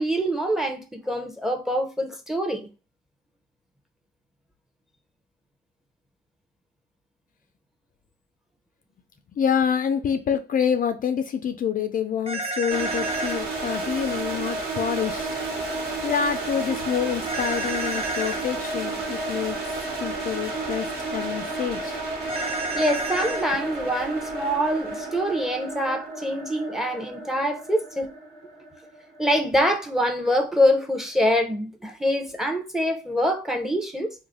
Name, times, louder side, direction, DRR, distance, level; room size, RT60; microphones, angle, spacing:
voice 1, 0.0-2.7 22.7-28.1 29.2-34.1, equal, ahead, 0.7 m, -25 dB
voice 2, 9.3-15.3 15.7-19.6 20.0-22.0, left 8 dB, 45° left, 0.4 m, -27 dB
sound 1, 12.3-13.4 17.3-18.4 22.3-23.4, right 2 dB, 30° right, 1.2 m, -30 dB
sound 2, 12.7-29.5, right 2 dB, 55° right, 1.3 m, -32 dB
3.2 x 2.1 x 3.6 m
cardioid pair, 90°, 20 cm